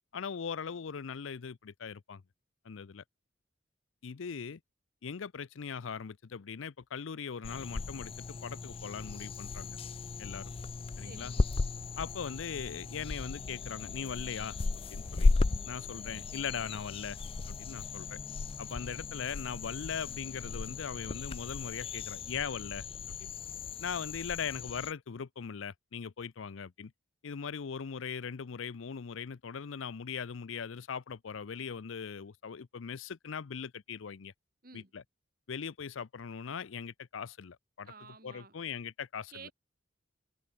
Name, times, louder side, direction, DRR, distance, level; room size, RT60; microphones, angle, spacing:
voice 1, 0.1-2.2 2.6-3.0 4.0-4.6 5.0-9.8 10.2-10.5 11.0-11.3 12.0-15.3 15.7-17.2 17.5-18.2 18.6-22.8 23.2-23.3 23.8-26.9 27.2-34.3 34.7-35.0 35.5-37.9 38.2-39.5, left 6 dB, 90° left, 0.6 m, -40 dB
sound 1, 7.4-24.9, left 3 dB, 30° left, 0.3 m, -35 dB
voice 2, 11.0-11.5 34.6-34.9 37.8-38.5 39.3-39.5, right 4 dB, 50° right, 2.8 m, -51 dB
head